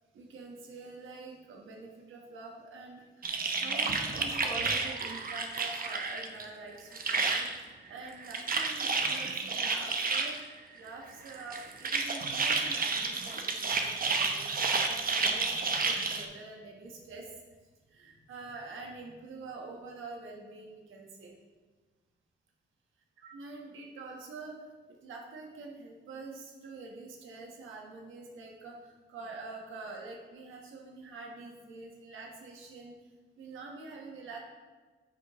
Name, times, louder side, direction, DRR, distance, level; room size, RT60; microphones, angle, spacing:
voice 1, 0.1-10.3 10.7-11.6 11.9-17.3 17.9-21.4 23.2-32.9 33.4-34.4, right 3 dB, 85° right, 1 dB, 1.4 m, -46 dB
sound 1, 3.2-6.4 6.7-7.6 8.0-10.4 11.3-16.2, right 4 dB, 45° right, 0.9 m, -31 dB
9.0 x 5.5 x 3.1 m, 1.3 s
cardioid pair, 65°, 20 cm